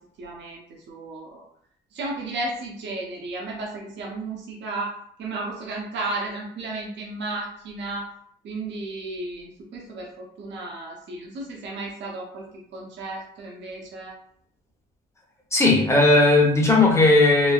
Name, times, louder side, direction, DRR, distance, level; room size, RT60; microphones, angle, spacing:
voice 1, 0.2-1.4 1.9-8.1 8.4-14.1, right 2 dB, 65° right, -2 dB, 0.7 m, -34 dB
voice 2, 15.5-17.5, left 2 dB, 15° left, -2 dB, 0.8 m, -17 dB
3.1 x 2.1 x 2.4 m, 0.64 s
cardioid pair, 90°, 20 cm